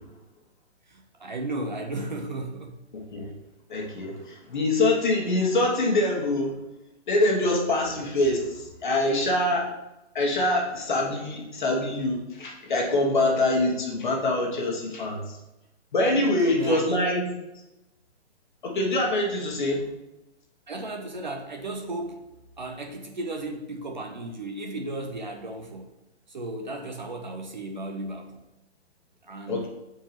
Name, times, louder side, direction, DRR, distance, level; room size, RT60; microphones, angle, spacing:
voice 1, 0.9-2.8 16.1-17.0 20.7-22.3 22.6-25.9 26.3-28.4 29.2-29.7, right 2 dB, 40° right, 3 dB, 0.6 m, -35 dB
voice 2, 2.9-3.3 3.7-6.6 7.1-9.7 10.1-15.2 15.9-17.3 18.6-19.8 29.5-29.7, left 2 dB, 45° left, -1 dB, 1.3 m, -24 dB
7.2 x 4.5 x 2.9 m, 0.94 s
hypercardioid pair, 180°, 35 cm